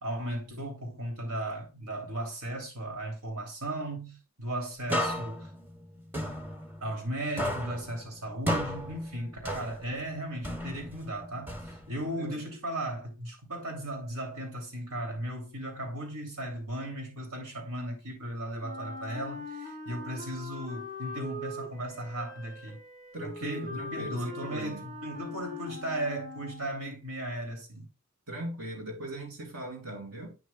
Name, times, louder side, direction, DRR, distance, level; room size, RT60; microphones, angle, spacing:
voice 1, 0.0-5.5 6.8-22.8 23.2-27.9, right 1 dB, 85° right, 2.8 m, -36 dB
sound 1, 4.9-7.1 7.4-10.1 10.4-12.1, equal, 10° right, 1.0 m, -34 dB
voice 2, 12.2-12.5 23.1-24.8 28.3-30.4, right 1 dB, 70° right, 2.7 m, -39 dB
Wind instrument woodwind instrument, 18.6-26.9, left 1 dB, 35° right, 2.2 m, -42 dB
9.1 x 6.2 x 2.2 m
head